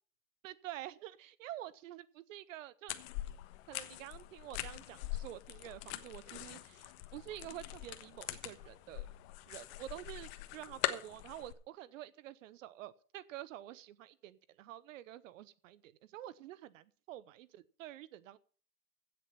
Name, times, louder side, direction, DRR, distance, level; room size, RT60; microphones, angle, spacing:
voice 1, 0.4-2.9 3.7-9.1 9.5-18.4, right 13 dB, 55° right, 19 dB, 0.8 m, -48 dB
sound 1, 2.9-11.5, left 15 dB, 45° left, 1.3 m, -43 dB
15.5 x 6.9 x 5.6 m, 0.42 s
hypercardioid pair, 120°, 46 cm